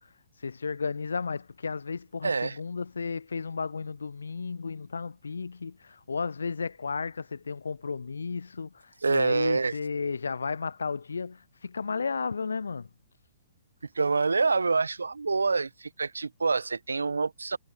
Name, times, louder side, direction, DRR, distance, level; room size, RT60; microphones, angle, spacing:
voice 1, 0.4-8.7 9.1-12.9, left 5 dB, 75° left, 0.3 m, -33 dB
voice 2, 2.2-2.6 9.0-9.8 13.9-17.6, right 4 dB, 75° right, 1.2 m, -26 dB
figure-of-eight pair, 120°, 0 cm